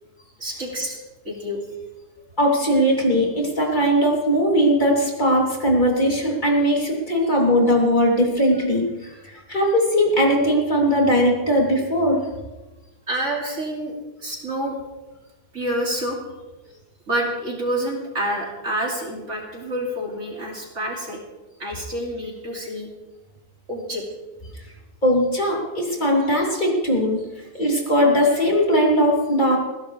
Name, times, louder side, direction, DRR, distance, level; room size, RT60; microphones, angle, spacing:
voice 1, 0.4-1.0 1.2-1.6 13.1-13.9 14.2-14.7 15.5-16.3 17.1-21.2 21.6-22.9 23.7-24.0, right 1 dB, 45° right, -2 dB, 3.0 m, -28 dB
voice 2, 2.4-8.9 9.2-12.2 25.0-27.2 27.5-29.6, equal, 25° left, -2 dB, 3.3 m, -19 dB
20.5 x 16.0 x 3.3 m, 1.1 s
omnidirectional pair, 1.7 m